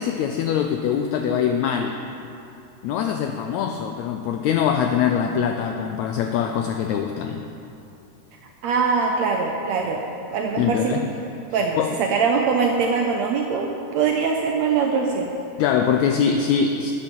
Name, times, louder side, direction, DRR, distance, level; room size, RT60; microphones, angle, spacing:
voice 1, 0.0-2.0 2.8-7.4 10.6-11.1 11.8-11.9 15.6-16.9, left 7 dB, 85° left, 5 dB, 1.6 m, -23 dB
voice 2, 8.6-10.0 10.3-11.0 11.5-15.3, right 5 dB, 75° right, 2 dB, 1.6 m, -22 dB
12.5 x 9.2 x 5.4 m, 2.7 s
omnidirectional pair, 3.8 m